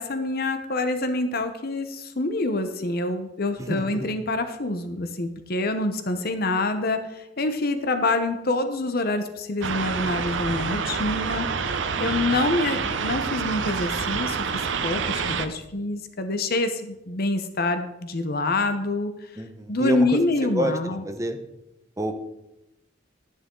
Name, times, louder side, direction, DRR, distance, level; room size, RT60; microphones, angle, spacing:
voice 1, 0.0-7.0 7.4-11.5 12.0-14.5 14.8-19.1 19.7-21.0, left 2 dB, 55° left, 8 dB, 0.9 m, -26 dB
voice 2, 3.6-4.1 12.0-12.4 19.4-21.4 22.0-22.1, right 1 dB, 15° right, 6 dB, 0.9 m, -29 dB
sound 1, 9.6-15.5, right 5 dB, 75° right, 0.7 m, -27 dB
11.0 x 10.0 x 3.8 m, 0.92 s
head